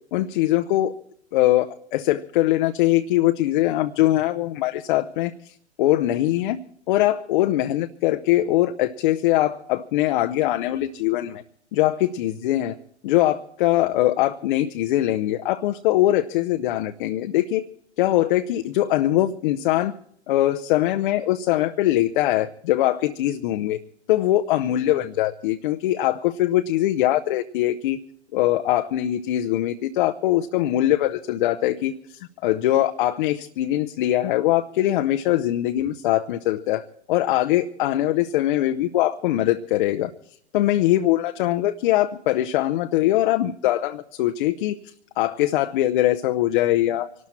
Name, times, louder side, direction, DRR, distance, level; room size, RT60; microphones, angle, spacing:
voice 1, 0.1-0.9 1.3-6.6 6.9-11.4 11.7-12.7 13.0-17.6 18.0-19.9 20.3-23.8 24.1-28.0 28.3-40.1 40.5-47.1, left 14 dB, 45° left, 8 dB, 0.8 m, -22 dB
25.0 x 12.5 x 4.3 m, 0.67 s
hypercardioid pair, 115°, 35 cm